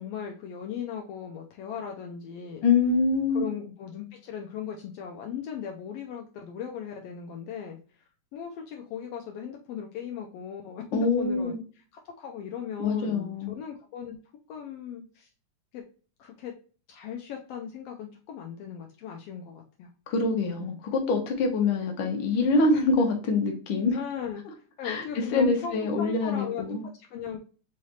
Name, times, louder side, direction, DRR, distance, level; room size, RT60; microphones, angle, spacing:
voice 1, 0.0-2.6 3.3-8.0 8.3-11.5 12.0-14.2 14.5-15.3 15.7-15.8 16.2-16.5 16.9-19.9 20.6-20.8 23.9-24.4 24.8-27.4, left 8 dB, 85° left, 2 dB, 1.3 m, -38 dB
voice 2, 2.6-3.5 10.9-11.6 12.8-13.5 20.1-24.0 24.8-25.0 25.3-26.8, left 3 dB, 65° left, 2 dB, 1.3 m, -25 dB
4.7 x 3.2 x 2.7 m, 0.38 s
omnidirectional pair, 3.4 m